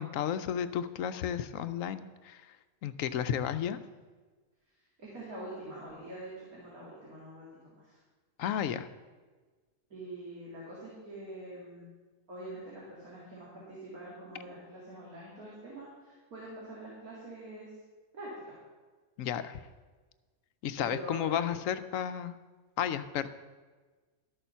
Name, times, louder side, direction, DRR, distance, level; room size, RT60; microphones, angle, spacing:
voice 1, 0.0-2.6 2.8-3.8 8.4-8.9 19.2-19.6 20.6-22.4 22.8-23.3, left 9 dB, 70° left, 12 dB, 0.9 m, -33 dB
voice 2, 5.0-7.5 7.8-8.0 9.9-11.9 12.3-17.7 18.1-18.5 20.8-21.5, right 1 dB, 85° right, -6 dB, 2.8 m, -45 dB
12.5 x 6.8 x 5.6 m, 1.4 s
omnidirectional pair, 1.5 m